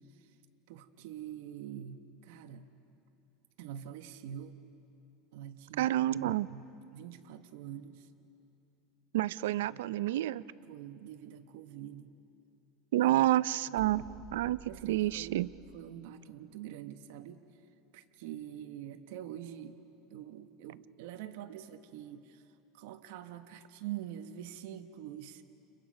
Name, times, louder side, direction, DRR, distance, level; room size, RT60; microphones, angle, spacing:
voice 1, 0.7-2.7 3.6-4.6 5.3-8.1 9.7-9.8 10.7-12.1 13.0-13.1 13.6-13.8 14.7-17.4 17.9-19.8 20.1-22.4 22.7-25.4, right 11 dB, 70° right, 7 dB, 1.1 m, -45 dB
voice 2, 5.8-6.5 9.1-10.4 12.9-14.0 14.3-15.5, right 14 dB, 85° right, 17 dB, 0.5 m, -29 dB
sound 1, 13.7-15.8, right 8 dB, 50° right, 2.0 m, -52 dB
30.0 x 29.5 x 5.2 m, 2.8 s
supercardioid pair, 140°, 0 cm